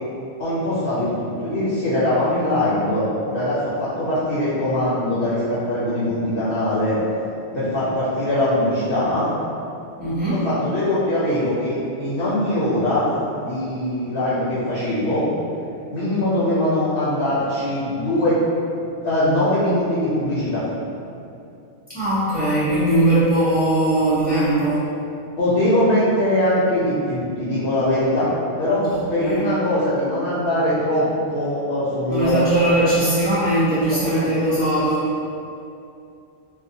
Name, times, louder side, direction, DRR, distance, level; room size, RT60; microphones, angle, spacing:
voice 1, 0.4-7.0 7.5-9.3 10.3-15.2 15.9-18.4 19.0-20.6 25.4-28.3 28.6-28.8 29.1-31.0 31.3-32.4 33.9-34.3, left 1 dB, 60° left, -10 dB, 0.7 m, -22 dB
voice 2, 10.0-10.4 21.9-24.9 28.9-29.5 32.1-35.1, right 1 dB, 10° right, -13 dB, 0.8 m, -20 dB
2.6 x 2.1 x 2.6 m, 2.6 s
omnidirectional pair, 1.2 m